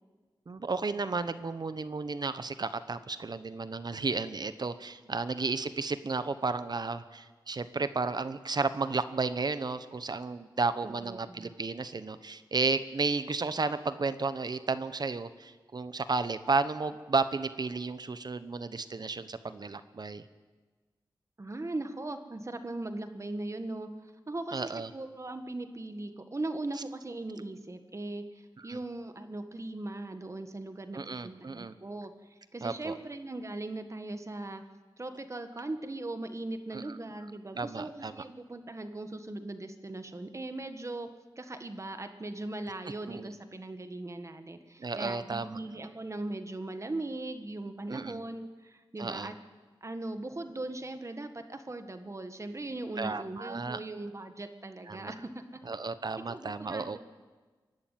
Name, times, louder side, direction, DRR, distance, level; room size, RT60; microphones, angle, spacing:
voice 1, 0.5-20.2 24.5-24.9 28.7-28.8 30.9-31.7 32.6-32.9 36.7-37.0 37.5-38.1 43.1-43.3 44.8-45.6 47.9-48.2 49.0-49.3 53.0-53.8 54.9-55.1 55.7-57.0, right 4 dB, 50° right, 12 dB, 1.0 m, -33 dB
voice 2, 10.8-11.5 21.4-23.9 24.3-32.1 32.5-34.6 35.0-41.1 41.4-49.3 49.8-55.6 56.2-57.0, right 2 dB, 35° right, 8 dB, 1.6 m, -39 dB
24.0 x 11.5 x 9.2 m, 1.3 s
wide cardioid pair, 85°, 9 cm